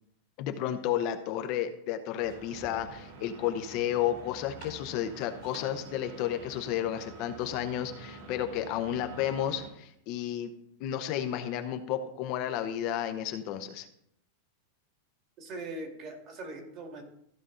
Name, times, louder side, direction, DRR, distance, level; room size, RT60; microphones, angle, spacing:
voice 1, 0.4-10.5 10.8-13.9, left 10 dB, 45° left, 7 dB, 0.8 m, -32 dB
sound 1, 2.2-9.7, right 3 dB, 60° right, 3.1 m, -47 dB
voice 2, 15.4-17.0, right 2 dB, 35° right, 3 dB, 2.0 m, -41 dB
14.5 x 5.4 x 3.8 m, 0.74 s
supercardioid pair, 150°, 0 cm